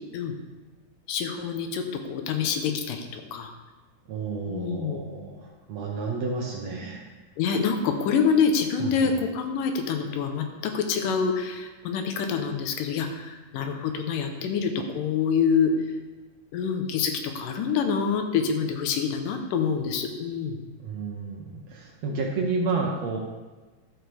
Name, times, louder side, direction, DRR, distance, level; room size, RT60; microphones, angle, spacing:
voice 1, 1.1-3.5 4.5-5.0 7.4-15.7 16.5-20.6, left 6 dB, 80° left, 5 dB, 2.4 m, -26 dB
voice 2, 4.1-7.0 8.8-9.1 20.8-23.2, right 4 dB, 65° right, 0 dB, 1.8 m, -31 dB
12.5 x 8.0 x 3.4 m, 1.3 s
omnidirectional pair, 3.9 m